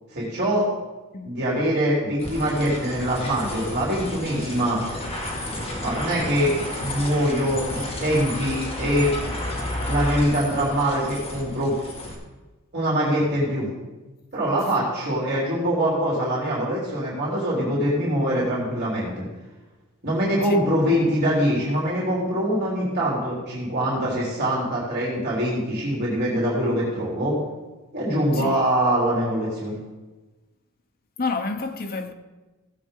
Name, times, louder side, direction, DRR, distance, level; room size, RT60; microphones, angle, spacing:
voice 1, 0.1-0.7 1.2-4.8 5.8-9.1 9.9-11.7 12.7-13.7 14.3-19.3 20.0-27.4 27.9-29.7, equal, 50° right, 3.4 m, -23 dB
sound 1, 2.2-12.2, left 1 dB, 25° left, 2.0 m, -31 dB
voice 2, 31.2-32.1, left 3 dB, 45° left, 0.8 m, -29 dB
16.5 x 7.8 x 3.8 m
head